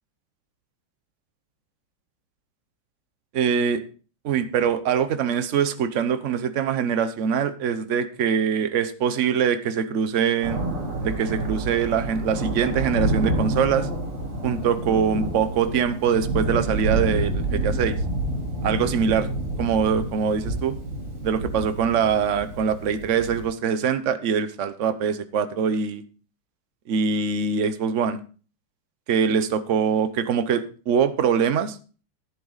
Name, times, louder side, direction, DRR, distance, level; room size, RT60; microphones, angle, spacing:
voice 1, 3.3-3.8 4.2-10.6 11.0-13.9 14.4-18.0 18.6-19.3 19.6-20.8 21.2-26.0 26.9-28.2 29.1-31.8, right 7 dB, 65° right, 11 dB, 0.7 m, -23 dB
Thunder, 10.4-23.5, right 1 dB, 80° right, 4.6 m, -28 dB
11.0 x 10.0 x 4.0 m, 0.38 s
omnidirectional pair, 2.4 m